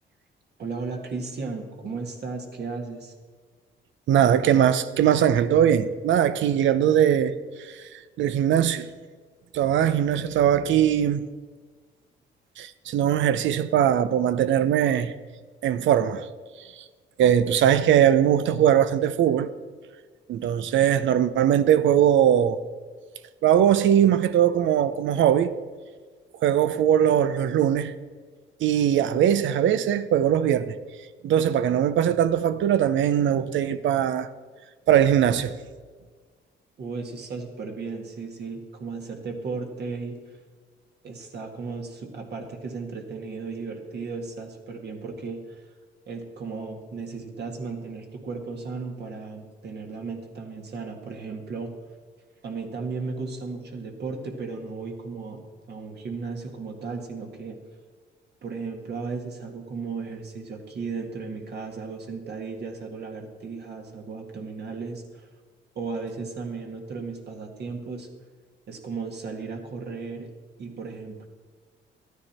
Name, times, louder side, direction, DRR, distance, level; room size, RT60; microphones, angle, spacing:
voice 1, 0.6-3.1 36.8-40.4 41.0-45.6 46.1-51.7 52.4-57.6 58.4-65.3 65.8-68.1 68.7-70.3 70.6-71.3, right 4 dB, 55° right, 1.8 m, -35 dB
voice 2, 4.1-8.9 9.5-11.3 12.6-15.1 15.6-16.3 17.2-19.5 20.3-22.6 23.4-25.5 26.4-27.9 28.6-30.8 31.2-34.3 34.9-35.6, right 10 dB, 75° right, 0.7 m, -21 dB
12.0 x 9.5 x 4.3 m
cardioid pair, 90°, 20 cm